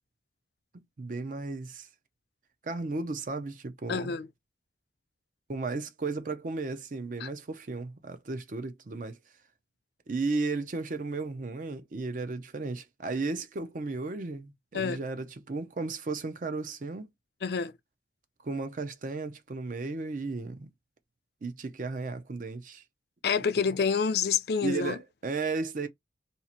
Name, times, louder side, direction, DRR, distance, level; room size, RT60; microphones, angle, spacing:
voice 1, 0.7-1.9 2.6-4.2 5.5-9.2 10.1-17.1 18.4-20.7 21.4-22.8 23.6-23.7 24.6-25.9, right 3 dB, 50° right, 0.5 m, -34 dB
voice 2, 3.9-4.3 7.2-7.3 14.7-15.0 17.4-17.7 23.2-24.9, left 6 dB, 65° left, 0.4 m, -27 dB
2.7 x 2.4 x 4.2 m
head